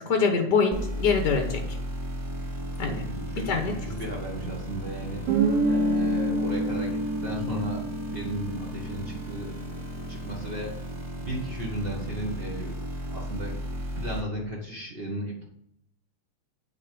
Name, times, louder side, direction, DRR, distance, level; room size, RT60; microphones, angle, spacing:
voice 1, 0.1-1.8 2.8-3.0 3.5-3.7, left 5 dB, 70° left, 4 dB, 1.0 m, -24 dB
sound 1, 0.7-14.2, equal, 25° right, 2.6 m, -35 dB
voice 2, 3.0-5.2 5.6-9.5 10.1-10.8 11.2-12.8 13.1-13.6 14.0-15.4, right 1 dB, 80° right, -2 dB, 0.5 m, -35 dB
Guitar, 5.3-9.8, right 1 dB, 55° right, 2.4 m, -27 dB
8.4 x 4.2 x 6.8 m, 0.72 s
omnidirectional pair, 3.4 m